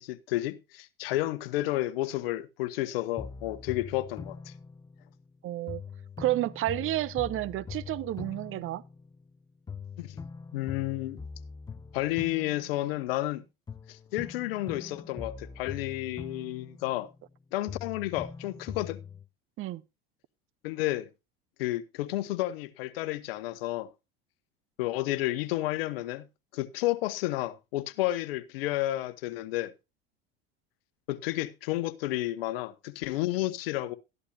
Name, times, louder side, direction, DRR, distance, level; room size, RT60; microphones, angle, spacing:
voice 1, 0.0-4.5 10.0-10.2 10.5-11.2 11.9-13.4 13.9-17.1 17.5-19.0 20.6-21.1 21.6-23.9 24.8-26.3 26.5-29.7 31.1-34.0, left 16 dB, 75° left, 1.1 m, -31 dB
sound 1, 3.2-5.3 5.7-9.4 9.7-13.3 13.7-17.4 17.7-19.3, left 5 dB, 15° left, 0.5 m, -43 dB
voice 2, 5.4-5.8 6.2-8.8 19.6-19.8, right 15 dB, 45° right, 0.8 m, -30 dB
13.5 x 11.0 x 2.7 m
hypercardioid pair, 85°, 29 cm